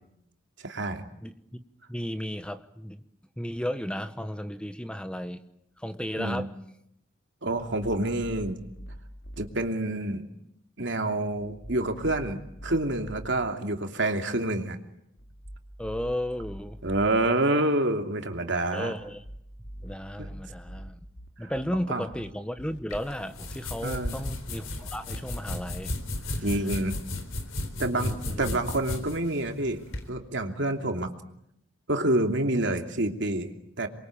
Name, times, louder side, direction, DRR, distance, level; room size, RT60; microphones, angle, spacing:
voice 1, 0.6-1.1 6.2-6.4 7.4-8.6 9.4-10.2 10.8-14.8 16.8-18.9 20.2-20.3 21.4-21.5 21.9-22.1 23.8-24.2 26.4-27.0 27.8-29.8 30.1-31.1 31.9-33.9, right 1 dB, 65° right, 4 dB, 2.9 m, -28 dB
voice 2, 1.2-1.6 1.9-3.0 3.4-5.4 5.8-6.5 15.8-16.8 18.7-19.2 19.8-21.0 21.4-26.0 26.3-26.4 27.9-28.6, equal, 5° left, 10 dB, 1.1 m, -34 dB
sound 1, 7.6-9.5 11.4-13.3 15.2-17.1 19.0-22.8, equal, 60° left, 2.6 m, -44 dB
sound 2, 22.9-30.1, left 1 dB, 85° left, 4.0 m, -35 dB
27.5 x 23.5 x 8.7 m, 0.77 s
head